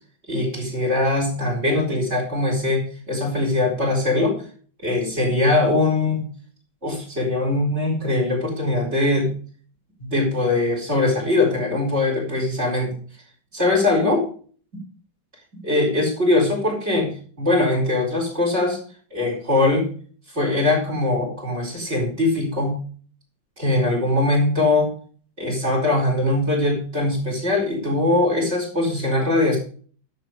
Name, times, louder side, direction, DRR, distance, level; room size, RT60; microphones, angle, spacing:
voice 1, 0.3-4.4 4.8-6.3 6.8-9.3 10.0-12.9 13.5-14.2 15.6-17.1 17.4-18.8 19.1-19.9 20.3-22.8 23.6-24.9 25.4-29.6, left 2 dB, 30° right, 0 dB, 4.6 m, -21 dB
11.0 x 6.9 x 4.9 m, 0.43 s
omnidirectional pair, 2.3 m